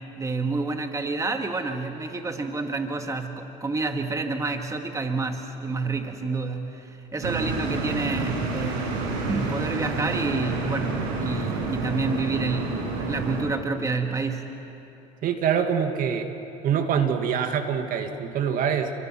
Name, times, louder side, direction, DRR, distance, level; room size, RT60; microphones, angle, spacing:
voice 1, 0.0-9.0 9.3-14.6, right 3 dB, 20° right, 5 dB, 1.8 m, -29 dB
sound 1, 7.2-13.4, right 3 dB, 85° right, 5.5 m, -29 dB
voice 2, 15.2-16.3 16.6-18.9, right 7 dB, 55° right, 6 dB, 2.2 m, -24 dB
29.5 x 24.5 x 6.1 m, 2.9 s
supercardioid pair, 95°, 17 cm